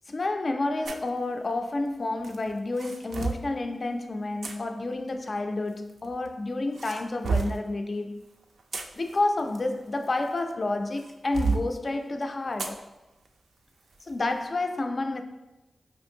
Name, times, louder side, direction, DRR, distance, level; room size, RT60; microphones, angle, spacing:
voice 1, 0.1-8.3 8.9-12.8 14.0-15.2, left 2 dB, 45° left, 0.3 m, -30 dB
sound 1, 0.8-1.1 2.2-3.5 4.4-4.5 5.7-6.3 6.7-7.7 8.4-10.5 11.0-11.7 12.6-12.8 13.2-13.3 13.9-14.1, right 4 dB, 80° right, 0.3 m, -31 dB
5.0 x 2.5 x 2.7 m
wide cardioid pair, 80°, 0 cm